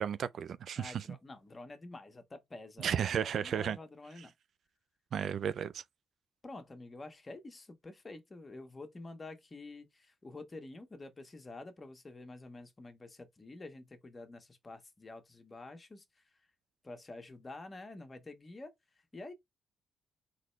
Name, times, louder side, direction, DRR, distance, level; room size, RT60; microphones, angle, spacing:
voice 1, 0.0-1.0 2.8-3.8 5.1-5.8, right 8 dB, 60° right, 0.4 m, -33 dB
voice 2, 0.8-4.3 6.4-16.2 16.8-18.7 19.1-19.3, left 2 dB, 25° left, 1.2 m, -48 dB
3.9 x 3.2 x 3.2 m
cardioid pair, 90°, 0 cm